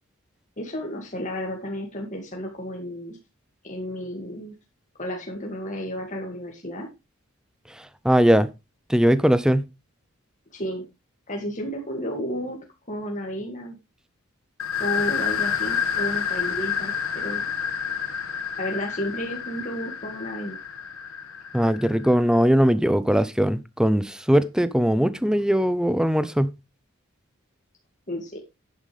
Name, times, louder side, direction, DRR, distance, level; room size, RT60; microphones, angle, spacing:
voice 1, 0.6-3.2 3.6-4.5 5.0-6.9 10.5-10.8 11.3-12.6 12.9-13.8 14.8-17.5 18.6-20.6 28.1-28.4, equal, 35° left, 2.2 m, -32 dB
voice 2, 7.8-8.5 8.9-9.6 21.5-26.5, equal, 5° right, 0.6 m, -20 dB
sound 1, 14.6-22.1, left 7 dB, 75° left, 1.7 m, -29 dB
10.5 x 9.2 x 3.3 m
head